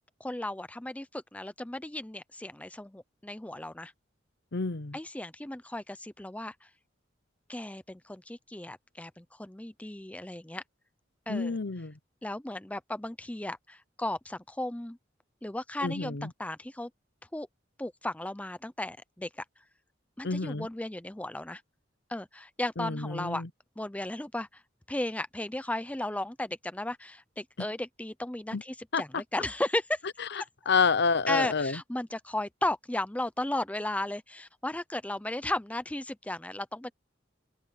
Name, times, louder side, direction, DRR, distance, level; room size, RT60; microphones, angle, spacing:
voice 1, 0.2-3.9 4.9-6.5 7.5-10.6 11.3-11.6 12.2-15.0 15.4-16.9 17.3-17.5 17.8-19.4 20.2-21.6 22.1-23.4 23.8-24.6 24.9-30.0 31.3-36.9, left 1 dB, 5° left, 0.6 m, -35 dB
voice 2, 4.5-5.0 11.3-11.9 15.8-16.3 20.2-20.7 22.8-23.5 28.5-28.6 28.9-29.0 30.7-31.8, left 4 dB, 60° left, 0.9 m, -28 dB
open air
head